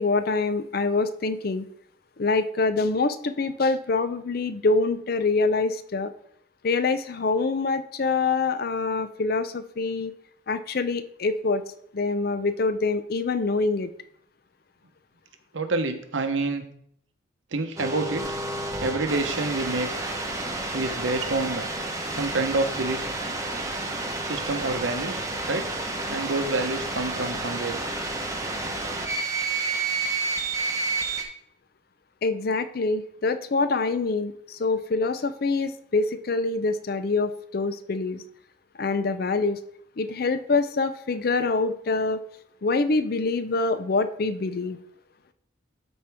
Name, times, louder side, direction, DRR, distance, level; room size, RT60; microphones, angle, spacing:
voice 1, 0.0-1.7 2.2-6.1 6.6-10.1 10.5-11.6 11.9-13.9 32.2-38.2 38.8-39.6 40.0-42.2 42.6-44.8, left 3 dB, 50° left, 11 dB, 0.5 m, -25 dB
voice 2, 15.5-16.7 17.5-18.4 18.8-20.1 20.7-21.7 22.1-23.0 24.2-25.7 26.1-27.8, right 3 dB, 80° right, 7 dB, 0.9 m, -28 dB
sound 1, 17.8-31.2, right 2 dB, 15° right, 0.8 m, -30 dB
12.5 x 4.4 x 3.5 m, 0.67 s
head